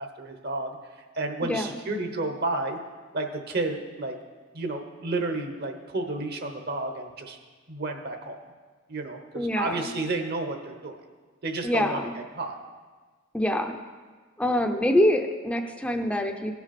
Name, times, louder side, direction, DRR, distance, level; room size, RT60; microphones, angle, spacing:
voice 1, 0.0-2.8 3.1-4.1 4.5-7.4 7.7-8.4 8.9-11.0 11.4-12.6, right 2 dB, 50° right, 5 dB, 1.0 m, -31 dB
voice 2, 9.4-9.8 11.6-12.1 13.3-13.8 14.4-16.5, left 1 dB, 5° left, 5 dB, 0.6 m, -25 dB
16.5 x 6.0 x 4.2 m, 1.4 s
head